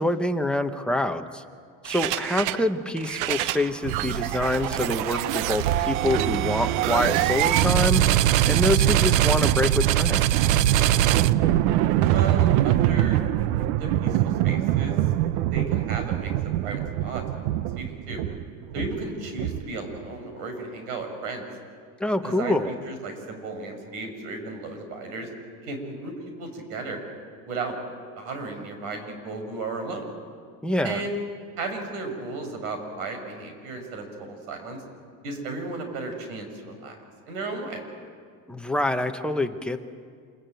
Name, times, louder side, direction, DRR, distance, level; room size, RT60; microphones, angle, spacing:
voice 1, 0.0-1.4 1.8-8.0 8.5-10.5 22.0-22.7 30.6-31.0 38.5-39.8, left 1 dB, ahead, 5 dB, 1.0 m, -26 dB
sound 1, 1.8-2.6 3.0-19.9, right 13 dB, 70° right, 0.8 m, -23 dB
voice 2, 12.0-13.2 13.7-14.9 15.4-16.3 16.6-17.5 17.8-18.2 18.7-21.5 22.2-22.6 22.9-25.3 25.6-27.0 27.5-27.8 28.2-30.1 30.8-31.2 31.6-34.8 35.2-37.0 37.3-37.8, right 3 dB, 90° right, 6 dB, 6.2 m, -34 dB
27.5 x 23.5 x 9.2 m, 2.1 s
cardioid pair, 160°, 42 cm